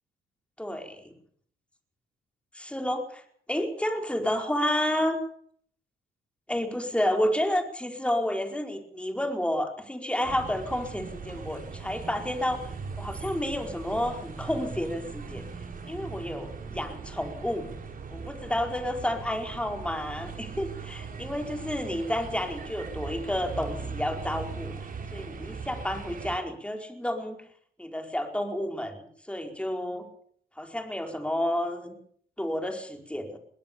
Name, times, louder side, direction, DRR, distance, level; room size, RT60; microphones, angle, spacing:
voice 1, 0.6-1.1 2.5-3.2 3.5-5.2 6.5-12.6 13.0-15.4 15.9-17.6 18.1-24.7 25.1-27.4 27.8-30.1 30.6-32.0 32.4-33.4, left 1 dB, 5° left, 4 dB, 4.9 m, -30 dB
sound 1, 10.2-26.4, right 5 dB, 45° right, 5.0 m, -39 dB
20.5 x 18.0 x 7.1 m, 0.62 s
cardioid pair, 90°, 20 cm